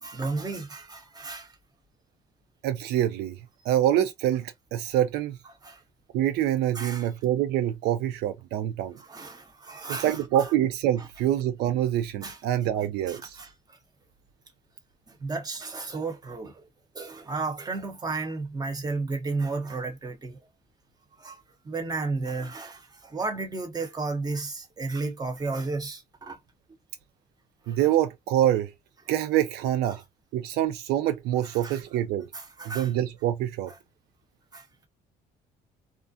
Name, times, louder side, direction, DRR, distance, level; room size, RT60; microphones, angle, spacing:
voice 1, 0.0-1.6 5.6-5.8 6.7-7.1 9.0-10.5 11.0-11.1 12.2-12.4 13.1-13.8 15.1-16.7 16.9-20.4 21.2-26.4 27.6-27.9 31.4-31.8 32.3-32.9 34.5-34.7, right 3 dB, 25° right, 0.9 m, -33 dB
voice 2, 2.6-3.4 3.7-5.4 6.1-9.0 10.0-13.4 27.7-28.7 29.1-30.0 30.3-32.3 32.7-33.7, right 12 dB, 75° right, 0.4 m, -25 dB
2.5 x 2.1 x 2.6 m
cardioid pair, 110°, 17 cm